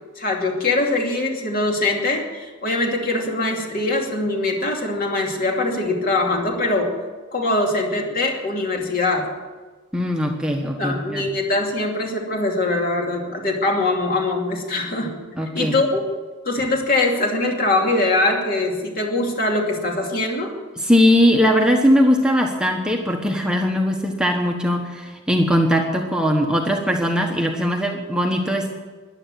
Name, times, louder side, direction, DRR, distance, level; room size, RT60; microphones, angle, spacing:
voice 1, 0.2-6.9 7.3-9.3 10.8-15.2 15.5-16.0 16.4-20.5, left 2 dB, 45° left, 1 dB, 2.7 m, -22 dB
voice 2, 9.9-11.3 15.4-15.8 20.8-28.7, equal, 5° right, 1 dB, 1.2 m, -20 dB
14.5 x 11.0 x 7.6 m, 1.4 s
head